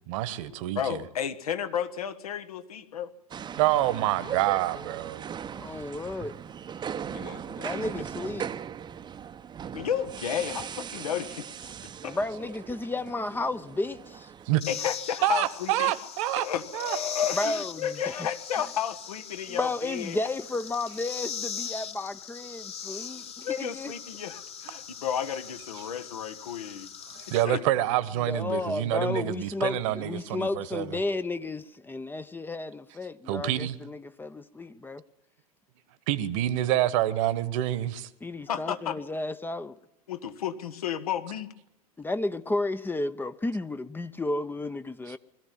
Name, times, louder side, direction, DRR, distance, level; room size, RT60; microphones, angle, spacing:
voice 1, 0.1-1.0 3.6-5.4 14.5-14.6 15.2-16.5 16.7-17.0 27.1-31.0 33.3-33.8 36.1-38.1, right 13 dB, 55° right, 1.3 m, -27 dB
voice 2, 0.7-3.1 7.1-7.8 9.7-11.4 12.0-12.2 14.7-15.9 16.4-20.2 22.9-26.9 27.4-27.6 38.5-39.0 40.1-41.5, left 8 dB, 70° left, 1.5 m, -32 dB
sound 1, 3.3-14.6, right 8 dB, 20° right, 0.8 m, -39 dB
voice 3, 5.5-6.3 7.6-8.5 12.0-14.3 17.3-18.0 19.5-23.9 28.2-35.0 38.2-39.8 42.0-45.2, left 2 dB, 10° left, 0.7 m, -32 dB
sound 2, 14.6-27.5, left 7 dB, 30° left, 1.5 m, -40 dB
21.5 x 14.5 x 9.3 m
figure-of-eight pair, 85°, 19 cm